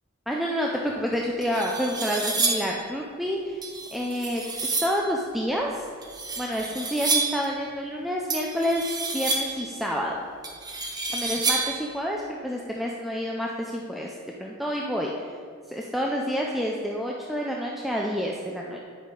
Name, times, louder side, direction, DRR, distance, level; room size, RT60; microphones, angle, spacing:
voice 1, 0.3-3.6 3.9-5.9 6.4-10.2 11.1-14.1 14.4-15.3 15.7-18.9, equal, ahead, -2 dB, 0.5 m, -29 dB
sound 1, 0.9-1.0 1.4-2.8 3.6-5.0 6.0-7.5 8.3-9.7 10.4-11.9, right 3 dB, 20° right, 0.9 m, -29 dB
10.0 x 5.4 x 4.8 m, 2.1 s
head